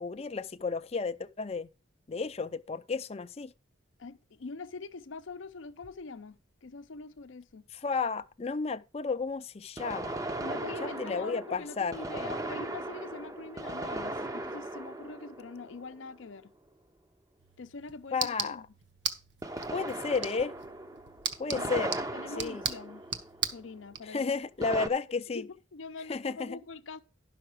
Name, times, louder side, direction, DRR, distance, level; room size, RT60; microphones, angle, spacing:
voice 1, 0.0-1.7 2.1-3.5 7.7-10.2 10.8-12.0 18.1-18.6 19.7-20.5 21.4-22.0 22.4-22.6 24.0-25.5 26.1-26.6, left 4 dB, 30° left, 0.4 m, -32 dB
voice 2, 4.0-7.7 10.4-16.5 17.6-18.6 21.5-21.7 22.1-23.0 23.5-24.4 24.8-25.0 25.3-27.0, left 4 dB, 75° left, 0.6 m, -44 dB
sound 1, 5.8-5.9 9.8-16.3 19.4-23.6 24.6-24.9, right 1 dB, 15° right, 0.6 m, -38 dB
sound 2, 17.4-24.0, right 7 dB, 60° right, 1.0 m, -38 dB
12.0 x 5.8 x 4.8 m
head